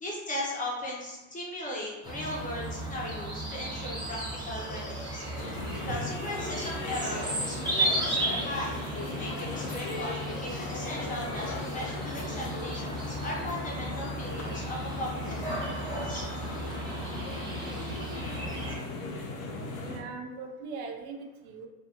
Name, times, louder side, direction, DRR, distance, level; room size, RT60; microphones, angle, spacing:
voice 1, 0.0-4.2 4.5-16.2, left 1 dB, 20° left, -3 dB, 0.7 m, -38 dB
sound 1, 2.0-18.8, right 1 dB, 10° right, 0.8 m, -35 dB
sound 2, 5.4-20.0, left 2 dB, 60° left, 0.8 m, -38 dB
voice 2, 19.6-21.7, right 4 dB, 80° right, 3 dB, 0.6 m, -40 dB
2.5 x 2.3 x 2.9 m, 1.1 s
supercardioid pair, 105°, 43 cm